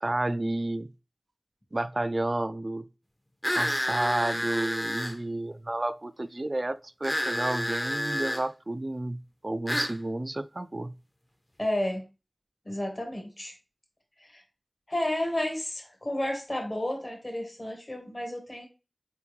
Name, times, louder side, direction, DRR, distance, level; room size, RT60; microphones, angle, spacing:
voice 1, 0.0-0.9 1.7-2.9 3.5-10.9, right 2 dB, 40° right, 0.3 m, -31 dB
sound 1, 3.4-5.2 7.0-8.4 9.7-10.0, equal, 20° left, 0.5 m, -29 dB
voice 2, 11.6-12.0 12.6-13.5 14.2-14.4 14.9-18.7, left 1 dB, 40° left, 1.3 m, -31 dB
4.6 x 3.4 x 3.1 m
wide cardioid pair, 65°, 0 cm